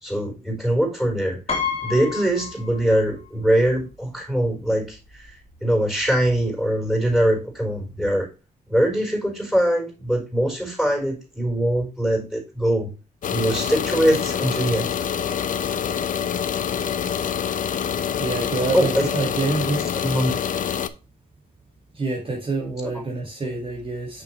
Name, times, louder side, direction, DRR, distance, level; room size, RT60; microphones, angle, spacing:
voice 1, 0.0-1.4 1.8-8.3 8.7-12.9 13.3-14.9 18.7-19.1 20.0-20.3, right 1 dB, ahead, 4.5 m, -22 dB
Piano, 1.5-3.3 3.6-3.7 4.9-5.0 5.3-5.5, left 6 dB, 40° left, 2.4 m, -30 dB
sound 1, 13.2-20.9, left 8 dB, 55° left, 0.7 m, -26 dB
voice 2, 18.2-19.8 21.9-24.2, right 3 dB, 35° right, 1.9 m, -27 dB
6.5 x 6.3 x 3.2 m
cardioid pair, 90°, 16 cm